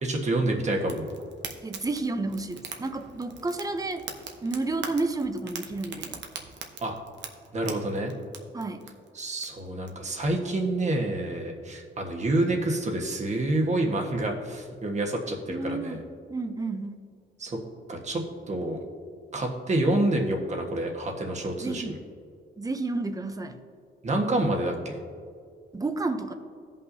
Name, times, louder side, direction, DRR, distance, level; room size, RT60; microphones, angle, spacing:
voice 1, 0.0-1.1 6.8-6.9 7.5-8.1 9.1-16.0 17.4-17.6 17.9-18.2 18.5-18.8 19.3-21.9 24.0-25.0, right 1 dB, 35° right, 1 dB, 1.4 m, -28 dB
Fire, 0.8-9.9, right 6 dB, 65° right, 0.9 m, -42 dB
voice 2, 1.6-4.0 4.4-6.2 8.5-8.8 15.5-16.0 16.3-17.0 21.6-22.0 22.6-23.6 25.7-26.3, right 3 dB, 20° right, 8 dB, 0.7 m, -31 dB
16.0 x 5.5 x 2.8 m, 2.2 s
cardioid pair, 90°, 20 cm